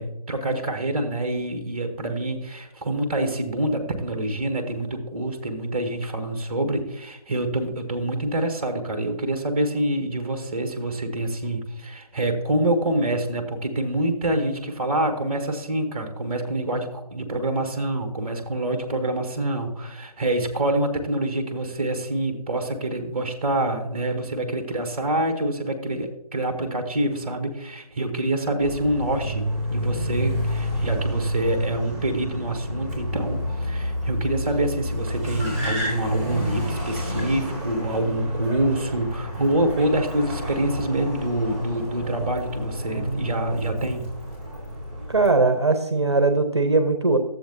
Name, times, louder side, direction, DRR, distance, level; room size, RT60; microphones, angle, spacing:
voice 1, 0.0-44.1, right 1 dB, 15° right, 6 dB, 0.9 m, -26 dB
Car, 28.6-45.3, equal, 20° left, 3.4 m, -30 dB
voice 2, 45.1-47.2, right 3 dB, 45° right, 8 dB, 0.7 m, -20 dB
12.0 x 7.7 x 2.7 m, 0.83 s
figure-of-eight pair, 160°, 20 cm